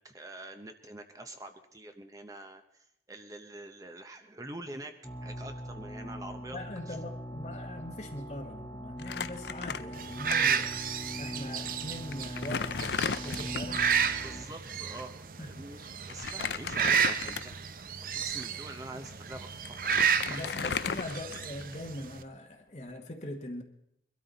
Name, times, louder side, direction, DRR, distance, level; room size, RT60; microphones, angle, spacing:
voice 1, 0.0-4.9 5.2-6.6 6.9-7.0 14.2-15.8 16.1-17.6 18.1-19.9 20.3-20.4, right 1 dB, 20° right, 6 dB, 0.8 m, -45 dB
sound 1, 5.0-14.4, equal, 15° left, 1.0 m, -42 dB
voice 2, 6.5-10.7 11.2-14.0 15.4-15.9 20.3-23.6, left 1 dB, 40° left, 2 dB, 1.2 m, -41 dB
Crumpling crinkling, 9.0-10.3 10.6-10.7 11.6-11.7 12.1-13.9 16.1-17.7 18.3-18.4 19.3-19.4 19.7-21.7, left 6 dB, 75° left, 0.6 m, -35 dB
sound 2, 10.0-22.2, right 7 dB, 50° right, 0.6 m, -32 dB
22.5 x 13.0 x 4.0 m, 0.76 s
head